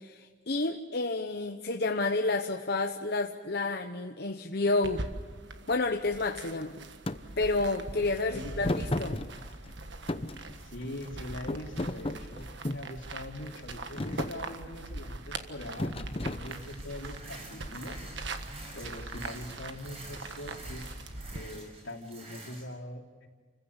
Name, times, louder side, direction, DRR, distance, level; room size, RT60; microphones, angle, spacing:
voice 1, 0.0-5.1 5.7-6.8 7.4-9.2, left 3 dB, 55° left, 4 dB, 1.0 m, -30 dB
sound 1, 4.8-21.4, right 2 dB, 65° right, 1.6 m, -42 dB
Thump thud, 7.1-7.2 8.6-9.7 10.1-11.1 11.5-12.9 13.5-13.7 14.0-14.4 15.8-16.9, left 1 dB, 30° left, 0.8 m, -33 dB
voice 2, 8.3-8.6 8.9-9.2 10.6-18.0 18.7-20.9 21.3-23.3, left 1 dB, 75° left, 1 dB, 3.2 m, -43 dB
sound 2, 16.5-22.6, right 2 dB, 30° right, 6.0 m, -48 dB
29.0 x 15.5 x 8.2 m, 1.5 s
head